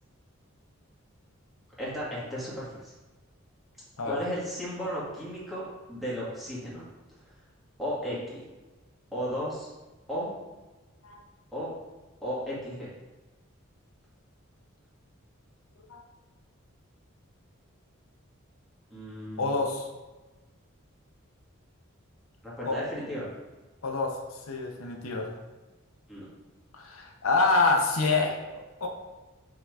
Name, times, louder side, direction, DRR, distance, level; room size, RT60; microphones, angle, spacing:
voice 1, 1.8-2.9 4.0-6.8 7.8-8.4 9.1-9.7 10.1-10.3 11.5-11.7 12.2-12.9 18.9-19.6 22.4-23.3 26.1-26.3, equal, ahead, -9 dB, 1.9 m, -34 dB
voice 2, 19.4-19.8 22.6-22.8 23.8-24.2 24.5-25.3 26.7-28.4 28.8-28.9, left 3 dB, 80° left, 2 dB, 0.8 m, -26 dB
5.8 x 3.7 x 4.8 m, 1.2 s
head